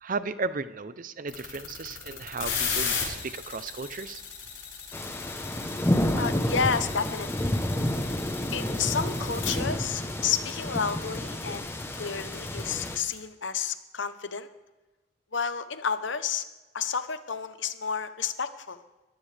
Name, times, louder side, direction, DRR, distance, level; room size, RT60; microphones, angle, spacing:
voice 1, 0.0-4.2, right 4 dB, 45° right, 13 dB, 0.6 m, -35 dB
sound 1, 1.3-13.1, left 6 dB, 90° left, 5.5 m, -35 dB
sound 2, 4.9-13.0, left 1 dB, 10° left, 0.9 m, -30 dB
voice 2, 6.2-7.6 8.5-11.7 12.0-14.5 15.3-16.5 16.7-18.8, left 6 dB, 70° left, 11 dB, 0.9 m, -31 dB
21.5 x 14.5 x 3.4 m, 1.2 s
head